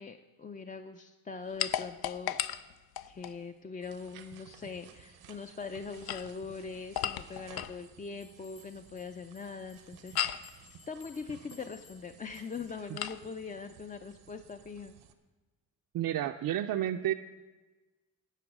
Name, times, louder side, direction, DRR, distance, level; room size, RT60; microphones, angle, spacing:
voice 1, 0.0-2.4 3.0-14.9, left 5 dB, 25° left, 7 dB, 0.4 m, -42 dB
sound 1, 1.6-3.4 5.9-7.8 10.2-10.5 13.0-13.2, left 11 dB, 85° left, 0.5 m, -35 dB
sound 2, 3.8-15.1, right 8 dB, 90° right, 0.9 m, -56 dB
sound 3, 8.2-12.8, left 5 dB, 70° left, 2.3 m, -60 dB
voice 2, 15.9-17.1, right 12 dB, 65° right, 6 dB, 0.5 m, -30 dB
10.0 x 8.6 x 6.0 m, 1.2 s
cardioid pair, 90°, 36 cm